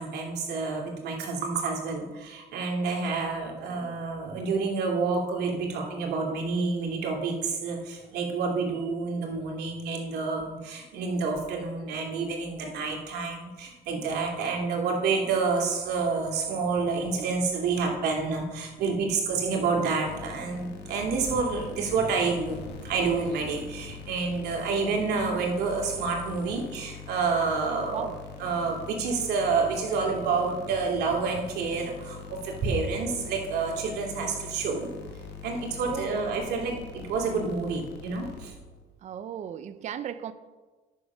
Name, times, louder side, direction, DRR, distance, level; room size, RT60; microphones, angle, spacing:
voice 1, 0.0-28.1 28.4-34.9 35.4-38.5, right 4 dB, 75° right, 0 dB, 2.5 m, -29 dB
sound 1, 20.1-38.8, left 6 dB, 80° left, 1.5 m, -43 dB
voice 2, 35.8-36.2 39.0-40.3, right 9 dB, 45° right, 12 dB, 0.5 m, -36 dB
9.7 x 6.4 x 6.0 m, 1.3 s
cardioid pair, 110°, 17 cm